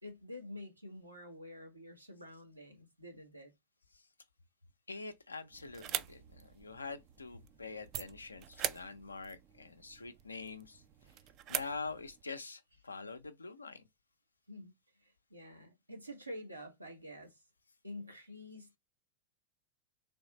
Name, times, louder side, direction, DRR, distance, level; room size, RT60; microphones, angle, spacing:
voice 1, 0.0-3.5 13.0-13.1 14.5-14.7 15.0-17.4 17.8-18.8, left 1 dB, 85° right, 0.9 m, -48 dB
voice 2, 4.9-10.8 11.5-13.8, left 4 dB, 80° left, 0.5 m, -45 dB
sound 1, 5.5-12.2, right 11 dB, 35° right, 0.4 m, -43 dB
3.4 x 3.1 x 4.0 m
figure-of-eight pair, 90°, 0 cm